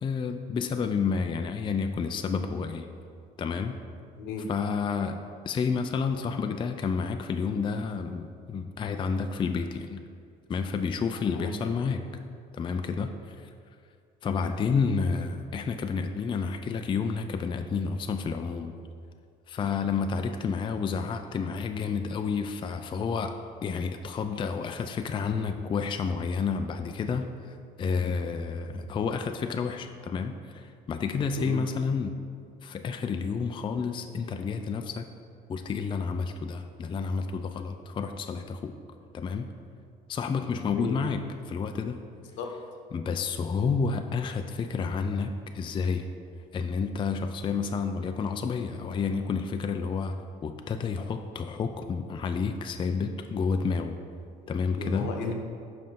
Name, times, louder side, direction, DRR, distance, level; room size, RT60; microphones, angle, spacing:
voice 1, 0.0-2.9 3.4-3.8 4.5-10.0 10.5-12.1 12.5-13.5 14.2-18.8 19.5-23.4 23.6-32.2 32.6-35.0 35.5-38.7 39.1-39.5 40.1-42.0 42.9-46.1 46.5-54.0 54.5-55.1, left 5 dB, 25° left, 6 dB, 0.4 m, -30 dB
voice 2, 4.1-4.5 11.3-11.6 31.4-31.6 40.6-41.0 42.4-42.5 54.7-55.3, left 4 dB, 80° left, 3 dB, 1.0 m, -34 dB
5.4 x 5.2 x 5.8 m, 2.3 s
supercardioid pair, 95°, 18 cm